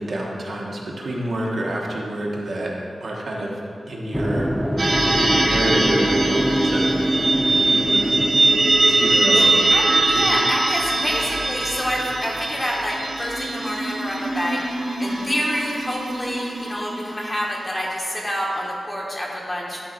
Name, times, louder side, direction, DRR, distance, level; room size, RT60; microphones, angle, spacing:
voice 1, 0.0-2.7 3.0-3.6 3.9-4.5 5.2-8.3 8.8-9.5 10.0-10.1 10.3-10.5, right 1 dB, 60° right, -3 dB, 1.1 m, -27 dB
sound 1, 4.1-14.3, equal, ahead, 0.3 m, -26 dB
sound 2, 4.8-17.3, right 2 dB, 35° right, 0.9 m, -22 dB
voice 2, 9.3-19.8, equal, 20° left, -3 dB, 1.3 m, -27 dB
11.5 x 3.9 x 4.0 m, 2.5 s
wide cardioid pair, 115°, 0 cm